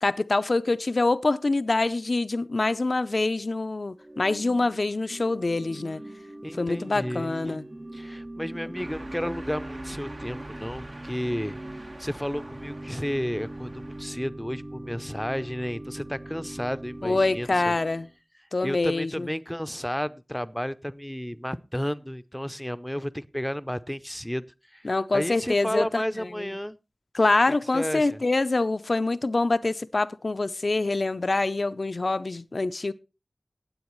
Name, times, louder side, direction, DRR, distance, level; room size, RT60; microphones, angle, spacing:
voice 1, 0.0-6.0 6.6-7.6 17.0-18.1 18.5-19.3 24.8-26.0 26.4-26.5 27.1-32.9, left 2 dB, 75° left, 0.5 m, -25 dB
Organ / Church bell, 4.0-18.1, right 1 dB, 40° right, 0.8 m, -41 dB
voice 2, 6.4-7.6 7.9-17.7 18.6-26.8 27.5-28.2, equal, 5° left, 0.6 m, -32 dB
sound 1, 8.7-14.0, right 1 dB, 65° right, 1.4 m, -44 dB
17.5 x 8.0 x 3.1 m
wide cardioid pair, 50°, 0 cm